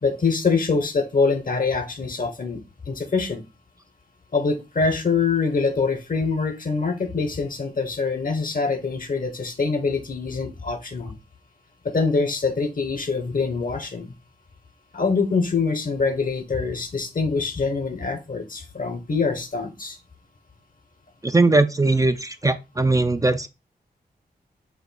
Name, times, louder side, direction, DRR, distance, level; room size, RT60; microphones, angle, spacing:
voice 1, 0.0-3.4 4.3-11.2 11.8-14.1 14.9-20.0, left 4 dB, 55° left, 1.1 m, -24 dB
voice 2, 21.2-23.5, right 2 dB, 20° right, 0.4 m, -20 dB
4.7 x 2.7 x 4.0 m
cardioid pair, 60°, 16 cm